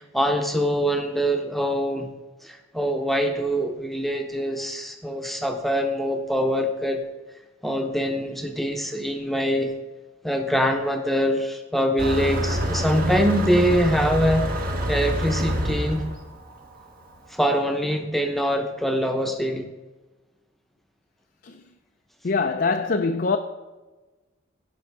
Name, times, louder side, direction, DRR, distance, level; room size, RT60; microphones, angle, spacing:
voice 1, 0.0-2.1 2.4-7.0 7.6-9.7 10.2-14.5 14.9-16.0 17.3-19.7, equal, ahead, 0.9 m, -24 dB
Motor vehicle (road), 12.0-17.1, equal, 45° right, 1.4 m, -27 dB
voice 2, 22.2-23.4, left 4 dB, 45° left, 0.5 m, -23 dB
16.5 x 5.6 x 4.7 m
head